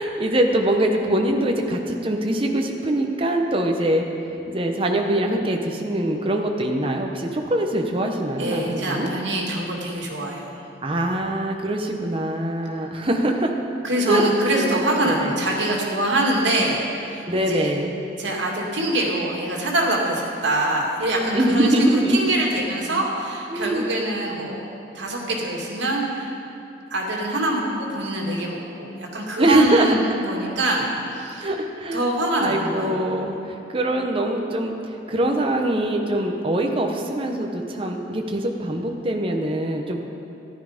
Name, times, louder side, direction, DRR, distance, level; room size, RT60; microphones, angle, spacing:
voice 1, 0.0-9.1 10.8-13.6 14.1-15.4 17.3-17.9 21.3-22.4 23.5-23.9 29.4-30.0 30.4-30.5 31.4-32.1 32.4-40.0, right 1 dB, 30° right, 2 dB, 0.9 m, -23 dB
voice 2, 8.4-10.6 12.8-12.9 13.8-17.7 18.2-24.6 24.9-26.3 26.9-31.5 31.9-33.3, right 1 dB, 75° right, -1 dB, 2.3 m, -24 dB
14.0 x 11.5 x 5.1 m, 2.7 s
head